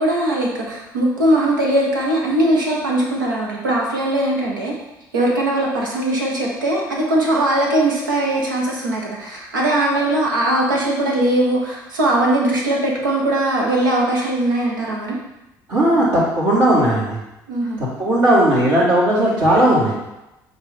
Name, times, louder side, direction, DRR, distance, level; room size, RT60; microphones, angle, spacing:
voice 1, 0.0-4.7 5.1-15.2 17.5-17.8, right 1 dB, 80° right, -2 dB, 1.2 m, -20 dB
voice 2, 15.7-17.1 18.0-19.9, right 1 dB, 55° right, -10 dB, 2.0 m, -16 dB
7.3 x 2.8 x 5.2 m, 0.94 s
figure-of-eight pair, 55°, 11 cm